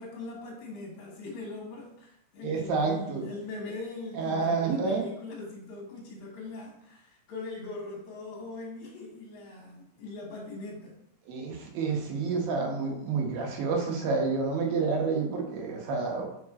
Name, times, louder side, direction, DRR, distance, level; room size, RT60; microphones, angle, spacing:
voice 1, 0.0-10.9, left 3 dB, 60° left, -1 dB, 2.6 m, -41 dB
voice 2, 2.4-3.3 4.1-5.1 11.3-16.3, right 4 dB, 90° right, 1 dB, 3.0 m, -29 dB
6.0 x 4.8 x 4.1 m, 0.76 s
omnidirectional pair, 4.0 m